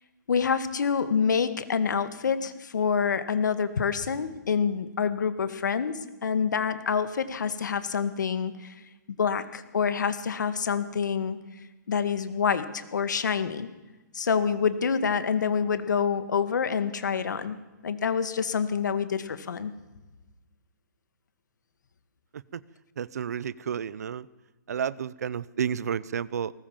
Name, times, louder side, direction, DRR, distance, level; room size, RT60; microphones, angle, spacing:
voice 1, 0.3-8.7 9.2-11.4 11.9-13.7 14.1-17.6 17.8-19.7, left 6 dB, 70° left, 12 dB, 1.9 m, -27 dB
voice 2, 23.0-24.3 24.7-26.5, right 8 dB, 55° right, 21 dB, 0.7 m, -31 dB
20.0 x 18.5 x 7.3 m, 1.1 s
hypercardioid pair, 170°, 10 cm